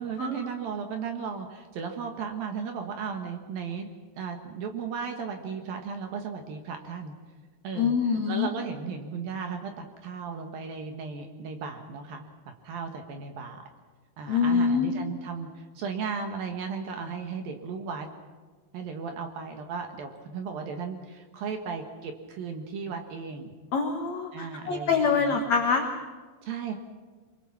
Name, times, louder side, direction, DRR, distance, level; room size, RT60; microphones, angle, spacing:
voice 1, 0.0-3.9 4.1-7.2 7.6-7.9 8.3-12.3 12.6-13.6 14.2-18.1 18.7-23.5 24.3-25.4 26.4-26.7, right 5 dB, 60° right, 4 dB, 2.8 m, -35 dB
voice 2, 7.7-8.5 14.3-14.9 23.7-25.9, left 5 dB, 85° left, 3 dB, 1.5 m, -25 dB
24.5 x 23.5 x 5.9 m, 1.4 s
omnidirectional pair, 5.5 m